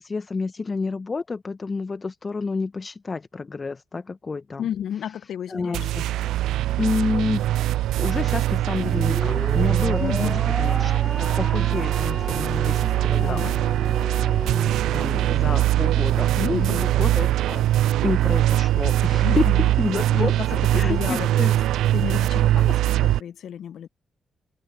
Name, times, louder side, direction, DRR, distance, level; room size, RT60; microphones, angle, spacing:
voice 1, 0.0-4.7 5.5-6.0 6.8-13.5 14.4-17.6 18.0-19.5 19.8-20.4 20.7-21.5, left 4 dB, 40° left, 1.3 m, -29 dB
voice 2, 4.6-5.9 10.0-10.4 13.2-13.5 16.3-16.9 19.2-19.7 20.1-20.5 20.7-21.4 21.9-23.9, left 9 dB, 70° left, 1.1 m, -32 dB
sound 1, 5.7-23.2, right 14 dB, 80° right, 0.4 m, -22 dB
sound 2, 8.8-15.3, left 1 dB, 15° left, 1.8 m, -34 dB
hypercardioid pair, 40°, 0 cm